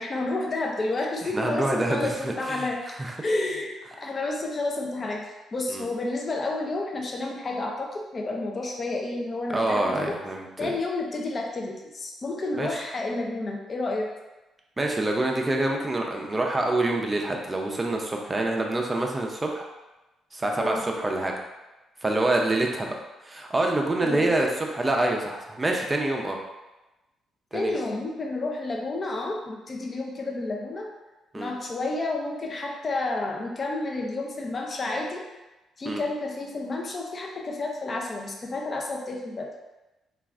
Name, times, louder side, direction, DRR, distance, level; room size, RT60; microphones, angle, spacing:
voice 1, 0.0-2.8 3.2-5.2 5.5-10.2 10.6-14.1 20.5-20.8 24.0-24.3 27.5-30.9 31.3-35.2 35.8-39.5, left 2 dB, 35° left, 0 dB, 0.4 m, -30 dB
voice 2, 1.3-3.2 5.7-5.9 9.5-10.7 12.5-12.8 14.8-19.6 20.3-21.3 22.0-22.9 23.2-26.4 27.5-27.8 31.3-31.5 35.8-36.0, right 2 dB, 20° right, 1 dB, 0.4 m, -26 dB
3.1 x 2.3 x 2.4 m, 1.0 s
cardioid pair, 90°, 0 cm